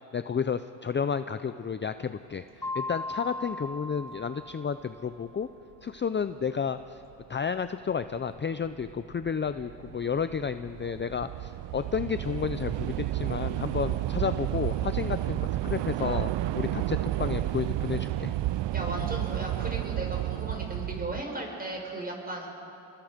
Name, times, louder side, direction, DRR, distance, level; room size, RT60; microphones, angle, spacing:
voice 1, 0.1-5.5 5.8-7.0 7.3-18.3, left 6 dB, 25° left, 11 dB, 0.6 m, -31 dB
Mallet percussion, 2.6-5.2, left 2 dB, 5° left, 1.4 m, -38 dB
Train / Subway metro underground, 7.2-7.3 8.1-8.4 8.6-21.2, right 14 dB, 70° right, 0.7 m, -31 dB
voice 2, 18.7-22.5, right 1 dB, 20° right, 0 dB, 5.4 m, -36 dB
29.5 x 22.0 x 5.2 m, 2.8 s
cardioid pair, 85°, 44 cm